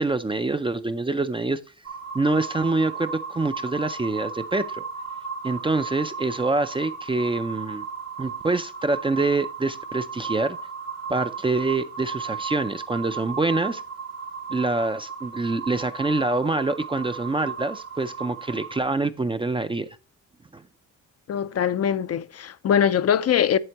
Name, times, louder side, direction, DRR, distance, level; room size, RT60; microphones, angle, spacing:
voice 1, 0.0-1.6 2.1-4.8 5.4-7.8 8.2-10.6 11.1-13.8 14.5-19.9 20.5-20.6, right 3 dB, 15° right, 0.4 m, -25 dB
sound 1, 1.8-18.8, right 5 dB, 90° right, 2.2 m, -35 dB
voice 2, 21.3-23.6, left 9 dB, 50° left, 0.5 m, -22 dB
8.1 x 7.8 x 2.9 m
cardioid pair, 95°, 33 cm